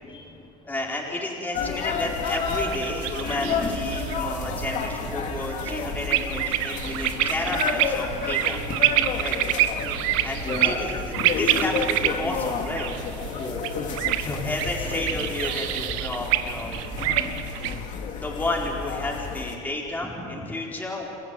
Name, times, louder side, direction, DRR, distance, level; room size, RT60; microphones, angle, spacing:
voice 1, 0.0-0.5 3.3-4.0 8.4-9.2 10.4-11.3 13.4-14.5 16.7-18.2, left 2 dB, 30° left, -3 dB, 4.2 m, -36 dB
voice 2, 0.6-8.6 9.2-9.4 10.1-12.9 14.1-17.1 17.9-21.1, left 2 dB, 10° left, -3 dB, 4.5 m, -31 dB
sound 1, 1.5-19.6, left 6 dB, 50° left, 2.7 m, -31 dB
sound 2, 1.9-17.9, right 13 dB, 85° right, 1.2 m, -28 dB
28.5 x 15.0 x 9.5 m, 2.5 s
cardioid pair, 125°, 16 cm